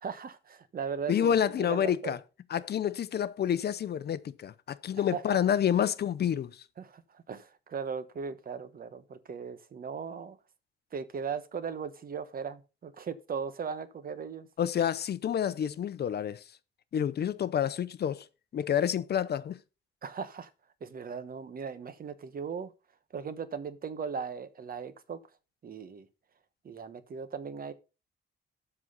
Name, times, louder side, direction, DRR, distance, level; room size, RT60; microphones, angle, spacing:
voice 1, 0.0-2.2 5.0-5.4 6.8-10.4 10.9-14.5 20.0-20.5 20.8-22.7 23.1-25.2 25.6-26.1 26.6-27.7, right 6 dB, 45° right, 1.1 m, -38 dB
voice 2, 1.1-2.2 2.5-6.6 14.6-16.4 16.9-18.2 18.5-19.6, left 9 dB, 50° left, 0.7 m, -28 dB
7.7 x 6.1 x 5.5 m
cardioid pair, 115°, 21 cm